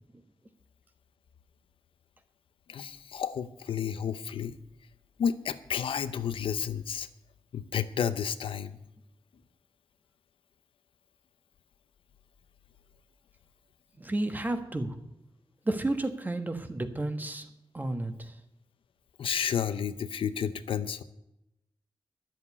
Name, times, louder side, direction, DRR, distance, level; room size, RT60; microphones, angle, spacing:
voice 1, 2.7-4.6 5.2-7.1 7.5-8.7 19.2-21.0, left 8 dB, 90° left, 11 dB, 0.7 m, -31 dB
voice 2, 14.0-15.0 15.6-17.5 17.7-18.3, right 2 dB, 20° right, 8 dB, 1.3 m, -31 dB
11.0 x 7.8 x 9.7 m, 0.86 s
wide cardioid pair, 105°, 9 cm